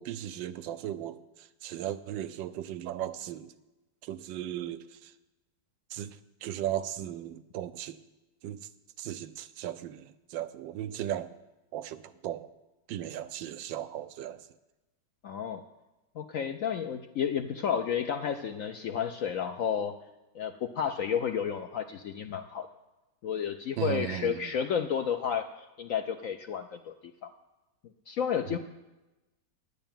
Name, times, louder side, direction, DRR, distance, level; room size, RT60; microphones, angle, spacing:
voice 1, 0.0-3.5 4.0-5.1 5.9-6.1 6.4-8.0 8.4-8.7 9.0-11.3 11.7-12.5 12.9-14.5 23.8-24.5 28.5-28.6, right 11 dB, 90° right, 12 dB, 1.3 m, -36 dB
voice 2, 15.2-15.6 16.2-19.9 20.3-22.7 23.2-25.5 25.8-26.9 27.2-27.3 28.1-28.6, left 8 dB, 70° left, 7 dB, 0.7 m, -31 dB
10.0 x 6.7 x 8.9 m, 1.1 s
omnidirectional pair, 1.9 m